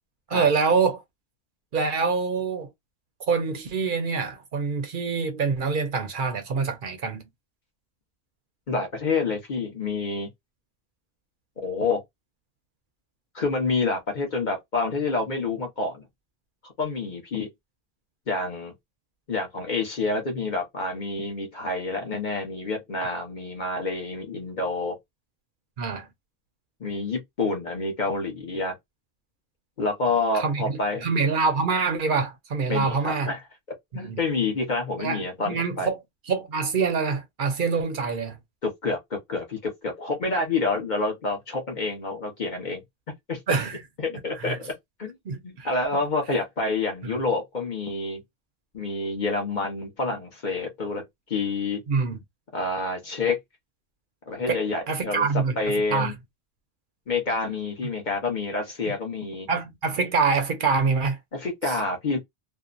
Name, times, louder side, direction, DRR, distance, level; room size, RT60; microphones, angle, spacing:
voice 1, 0.3-1.0 1.7-2.7 3.3-7.3 25.8-26.1 30.3-33.3 34.0-34.2 35.0-36.0 36.3-38.4 43.5-43.8 44.1-44.6 45.3-46.0 47.0-47.2 51.9-52.2 54.5-54.6 54.9-56.1 59.5-61.2 61.6-61.8, right 5 dB, 60° right, 0.6 m, -25 dB
voice 2, 8.7-10.3 11.6-12.0 13.3-16.0 16.6-17.5 18.3-18.7 19.3-25.0 26.8-28.7 29.8-31.1 32.7-33.4 33.9-35.9 38.6-42.8 43.3-43.4 44.0-44.6 45.0-45.2 45.4-48.2 48.7-51.0 51.3-51.8 52.5-53.4 54.3-55.3 55.6-56.1 57.1-59.5 61.3-62.2, left 3 dB, 45° left, 1.0 m, -28 dB
2.7 x 2.1 x 2.4 m
omnidirectional pair, 1.1 m